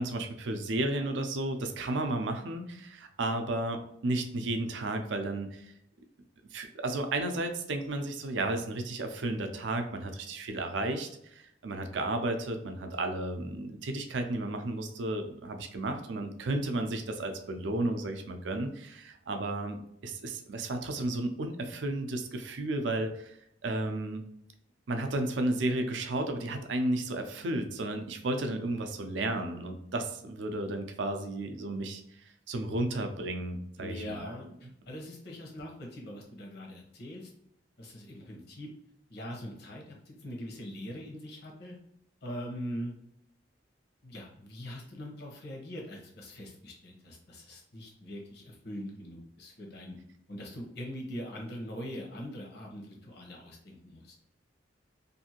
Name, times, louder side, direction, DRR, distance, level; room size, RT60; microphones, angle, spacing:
voice 1, 0.0-5.7 6.5-24.2 24.9-34.5, right 2 dB, 75° right, 5 dB, 0.5 m, -33 dB
voice 2, 33.8-34.5 34.9-37.3 37.8-38.7 39.1-41.8 42.2-42.9 44.0-50.0 50.3-54.1, equal, 60° left, 0 dB, 0.8 m, -42 dB
2.6 x 2.5 x 2.8 m, 0.75 s
head